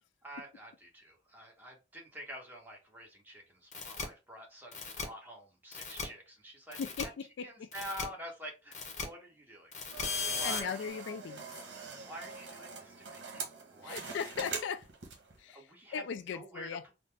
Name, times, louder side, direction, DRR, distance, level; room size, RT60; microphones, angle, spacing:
voice 1, 0.2-6.8 7.4-8.8 9.0-11.1 11.5-11.7 12.0-14.2 15.5-16.0 16.3-16.9, equal, 10° right, 1.1 m, -47 dB
sound 1, 3.7-4.0 4.7-5.0 5.7-6.0 6.7-7.0 7.7-8.0 8.7-9.0 9.7-10.6, left 5 dB, 40° left, 0.9 m, -36 dB
voice 2, 6.8-7.7 10.4-11.4 13.8-14.9 15.4-15.7 15.9-16.8, left 7 dB, 75° left, 0.3 m, -38 dB
sound 2, 9.9-15.4, right 4 dB, 75° right, 1.0 m, -44 dB
4.0 x 2.1 x 3.3 m
head